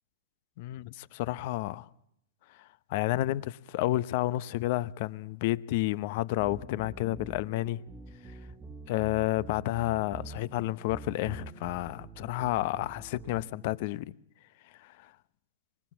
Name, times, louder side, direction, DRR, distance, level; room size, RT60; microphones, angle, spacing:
voice 1, 0.6-1.9 2.9-7.8 8.9-14.1 14.8-15.1, left 16 dB, 55° left, 0.8 m, -30 dB
sound 1, 6.4-13.8, right 3 dB, 15° right, 1.7 m, -46 dB
25.5 x 20.5 x 7.2 m
hypercardioid pair, 120°, 0 cm